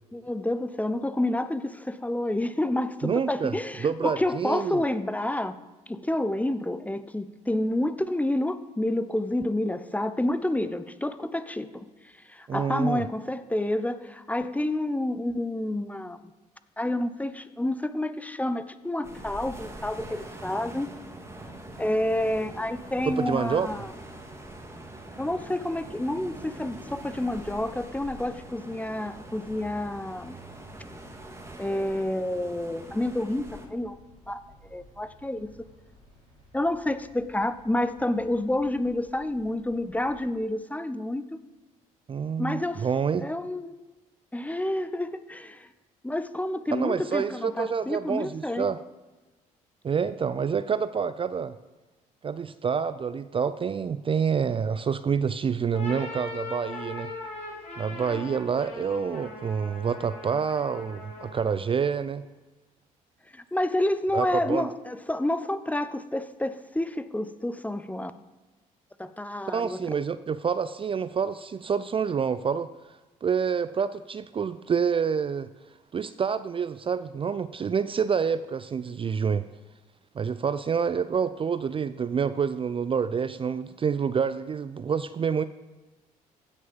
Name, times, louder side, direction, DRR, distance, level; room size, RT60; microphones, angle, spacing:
voice 1, 0.1-5.6 5.9-11.9 12.3-16.2 16.8-20.9 21.8-23.9 25.2-30.4 31.6-34.0 34.3-34.4 34.7-35.5 36.5-41.2 42.4-42.9 43.2-43.8 44.3-45.7 46.0-48.7 63.3-68.1 69.0-69.8, left 1 dB, 10° left, 12 dB, 0.7 m, -29 dB
voice 2, 3.0-3.5 3.8-4.8 12.5-13.0 23.1-23.7 42.1-43.3 46.7-48.8 49.8-51.6 52.2-57.1 57.8-62.2 64.1-64.7 69.5-72.7 73.2-75.5 75.9-79.4 80.2-85.4, right 6 dB, 30° right, 13 dB, 0.5 m, -27 dB
sound 1, 19.0-33.7, right 1 dB, 15° right, 2.2 m, -44 dB
Traffic noise roadway noise, 21.2-40.2, equal, 85° right, 4.3 m, -53 dB
sound 2, 55.6-61.6, left 3 dB, 40° left, 4.8 m, -40 dB
16.0 x 6.4 x 5.3 m, 1.2 s
figure-of-eight pair, 50°, 18 cm